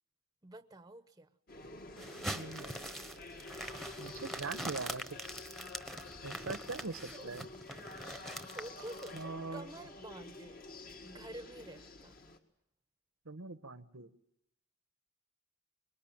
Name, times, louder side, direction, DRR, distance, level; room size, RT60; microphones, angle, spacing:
voice 1, 0.4-1.3 7.1-7.3 8.5-10.7 11.0-12.2, right 1 dB, 20° right, 11 dB, 0.9 m, -49 dB
sound 1, 1.5-12.4, left 2 dB, 45° left, 1.9 m, -49 dB
sound 2, 2.0-9.2, right 1 dB, ahead, 1.2 m, -44 dB
voice 2, 2.3-2.7 4.0-5.0 6.2-7.5 9.1-9.7 13.2-14.1, right 3 dB, 90° right, 12 dB, 1.3 m, -42 dB
25.5 x 21.0 x 9.0 m, 0.78 s
head